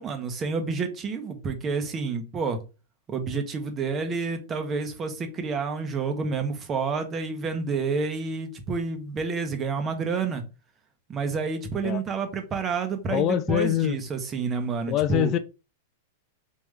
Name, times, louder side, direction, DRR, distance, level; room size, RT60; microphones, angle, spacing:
voice 1, 0.0-2.6 3.1-10.4 11.1-15.3, right 4 dB, 25° right, 1.0 m, -29 dB
voice 2, 13.1-14.0 14.9-15.4, left 12 dB, 40° left, 0.3 m, -24 dB
3.6 x 2.9 x 3.2 m
hypercardioid pair, 130°, 0 cm